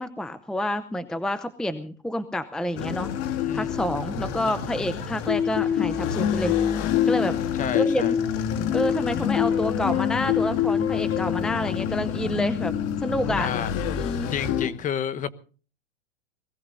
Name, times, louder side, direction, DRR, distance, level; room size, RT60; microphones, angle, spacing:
voice 1, 0.0-3.1 3.5-6.5 7.1-7.4 7.7-8.2 8.7-12.7 13.0-13.5 14.0-14.3, left 1 dB, ahead, 0.7 m, -28 dB
sound 1, 2.8-14.7, left 9 dB, 40° left, 2.0 m, -26 dB
voice 2, 3.4-3.7 7.5-8.2 13.4-13.8 14.3-15.3, left 8 dB, 20° left, 1.1 m, -30 dB
20.5 x 16.5 x 4.0 m
supercardioid pair, 140°, 35 cm